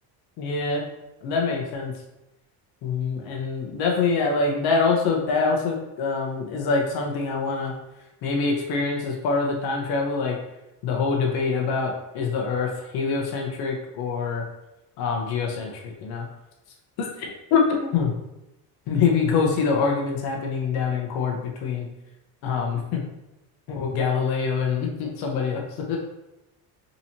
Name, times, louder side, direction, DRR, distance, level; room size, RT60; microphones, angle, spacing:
voice 1, 0.4-0.8 1.2-1.9 2.8-7.7 8.2-10.4 10.8-14.4 15.0-16.2 17.0-18.1 18.9-21.9 22.4-23.0 23.7-26.0, left 5 dB, 75° left, 0 dB, 0.8 m, -25 dB
3.9 x 2.9 x 2.8 m, 0.90 s
cardioid pair, 145°, 38 cm